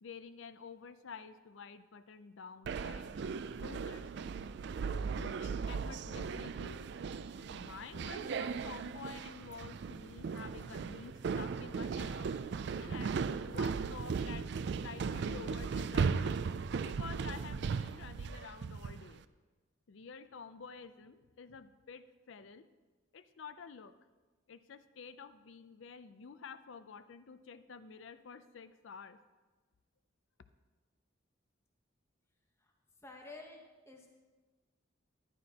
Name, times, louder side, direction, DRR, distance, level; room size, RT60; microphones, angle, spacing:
voice 1, 0.0-3.1 3.6-4.1 5.1-6.8 7.5-12.3 12.8-13.2 13.5-14.5 14.8-16.4 16.8-19.3 19.9-22.7 23.1-23.9 24.5-29.2, left 5 dB, 70° left, 12 dB, 0.5 m, -50 dB
sound 1, 2.7-19.1, right 5 dB, 60° right, 0.3 m, -37 dB
voice 2, 33.0-34.1, left 2 dB, 15° left, 1 dB, 1.0 m, -51 dB
13.5 x 11.0 x 2.9 m, 1.3 s
head